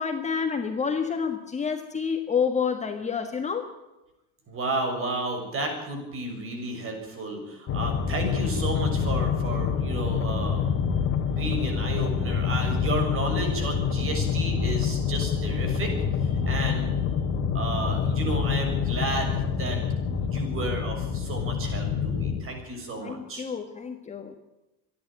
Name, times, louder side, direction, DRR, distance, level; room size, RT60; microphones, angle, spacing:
voice 1, 0.0-3.7 23.0-24.4, left 6 dB, 20° left, 5 dB, 1.5 m, -28 dB
voice 2, 4.5-10.7 11.2-17.0 17.5-19.8 20.1-23.5, right 2 dB, 35° right, 4 dB, 6.7 m, -32 dB
sound 1, 7.7-22.4, left 6 dB, 40° left, 2.8 m, -26 dB
26.5 x 11.0 x 8.9 m, 0.98 s
cardioid pair, 150°, 38 cm